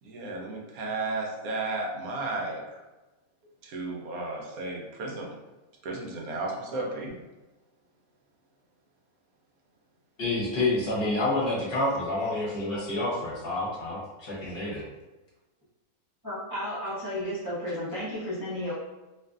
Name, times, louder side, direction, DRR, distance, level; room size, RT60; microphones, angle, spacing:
voice 1, 0.0-2.6 3.6-5.4 5.8-7.2, right 2 dB, 80° right, -1 dB, 1.0 m, -33 dB
voice 2, 10.2-14.8, left 2 dB, 45° left, -6 dB, 1.0 m, -28 dB
voice 3, 16.2-18.7, left 1 dB, 25° right, -10 dB, 0.4 m, -33 dB
2.6 x 2.4 x 2.3 m, 1.1 s
omnidirectional pair, 1.5 m